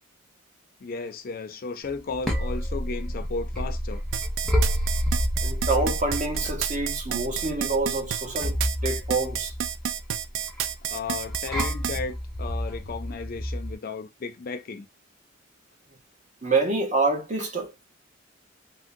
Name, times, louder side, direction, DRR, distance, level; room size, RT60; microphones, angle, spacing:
voice 1, 0.8-4.0 10.8-14.9, left 4 dB, 50° left, 0.4 m, -34 dB
sound 1, 1.9-13.7, equal, ahead, 0.7 m, -30 dB
sound 2, 4.1-12.0, right 9 dB, 80° right, 0.3 m, -30 dB
voice 2, 5.4-9.5 16.4-17.8, right 3 dB, 40° right, 0.9 m, -27 dB
3.5 x 2.1 x 2.6 m
head